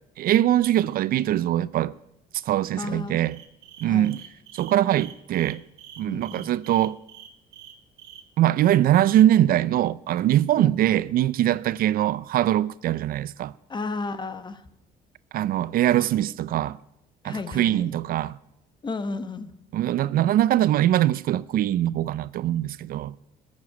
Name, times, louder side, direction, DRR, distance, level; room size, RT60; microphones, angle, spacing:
voice 1, 0.2-1.9 2.3-3.4 3.8-4.2 4.5-5.6 6.0-7.0 8.4-13.5 15.3-16.8 17.2-18.4 19.7-23.1, right 12 dB, 60° right, 0.4 m, -22 dB
voice 2, 2.8-3.2 3.9-4.2 6.1-6.5 10.6-10.7 13.7-14.6 17.2-17.9 18.8-19.5, left 3 dB, 25° left, 1.1 m, -33 dB
sound 1, 3.2-8.2, right 9 dB, 90° right, 1.6 m, -46 dB
13.5 x 7.4 x 9.6 m
cardioid pair, 110°, 17 cm